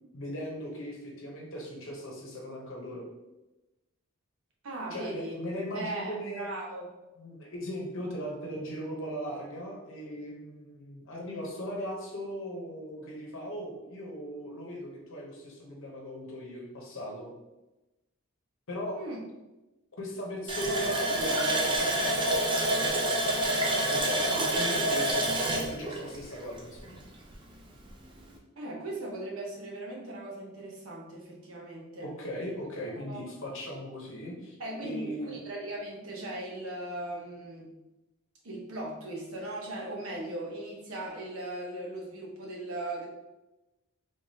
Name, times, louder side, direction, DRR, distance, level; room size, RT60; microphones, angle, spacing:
voice 1, 0.1-3.0 4.9-6.5 7.2-17.3 18.7-19.0 20.0-23.1 23.9-27.0 32.0-35.4, equal, 65° left, -1 dB, 0.9 m, -38 dB
voice 2, 4.6-5.4 5.7-6.9 19.0-19.2 24.3-24.9 28.6-32.1 33.1-33.2 34.6-37.7 38.4-43.1, right 1 dB, 75° right, -2 dB, 1.0 m, -38 dB
Water tap faucet, 20.5-27.0 27.3-27.4 27.9-28.0, right 1 dB, 25° right, 0.5 m, -28 dB
3.5 x 3.4 x 2.8 m, 1.0 s
head